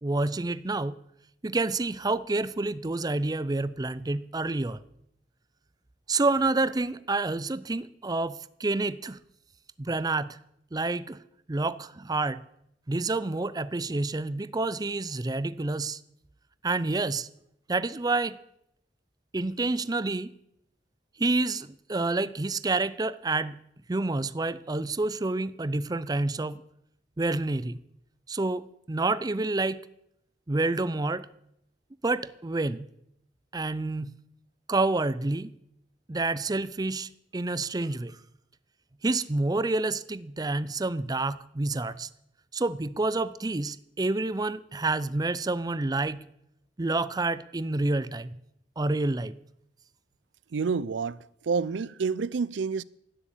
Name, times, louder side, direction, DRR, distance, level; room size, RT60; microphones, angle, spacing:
voice 1, 0.0-1.0 1.4-4.8 6.1-9.2 9.8-10.4 10.7-11.2 11.5-12.4 12.9-16.0 16.6-17.3 17.7-18.4 19.3-20.3 21.2-23.6 23.9-26.6 27.2-27.8 28.3-29.8 30.5-31.3 32.0-32.9 33.5-34.1 34.7-35.5 36.1-38.2 39.0-42.1 42.5-46.2 46.8-48.3 48.8-49.4, right 2 dB, 20° right, 0.5 m, -28 dB
voice 2, 50.5-51.2 51.5-52.8, right 5 dB, 85° right, 0.5 m, -28 dB
12.5 x 10.0 x 8.4 m
head